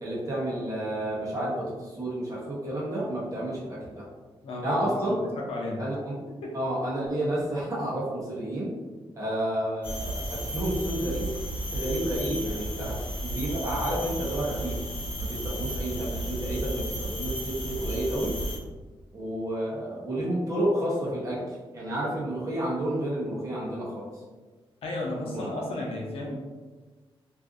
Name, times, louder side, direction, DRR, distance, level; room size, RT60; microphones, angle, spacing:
voice 1, 0.0-4.0 4.6-5.2 5.8-6.0 6.5-8.7 9.2-11.3 11.7-13.0 13.2-14.8 15.2-18.3 19.1-24.1 25.3-25.5, right 1 dB, 35° right, -5 dB, 0.8 m, -30 dB
voice 2, 4.4-5.8 6.3-6.5 24.8-26.3, left 2 dB, 85° left, -2 dB, 0.6 m, -34 dB
sound 1, 9.8-18.6, right 1 dB, 60° left, 1.0 m, -33 dB
2.5 x 2.4 x 2.5 m, 1.3 s
wide cardioid pair, 140°, 10 cm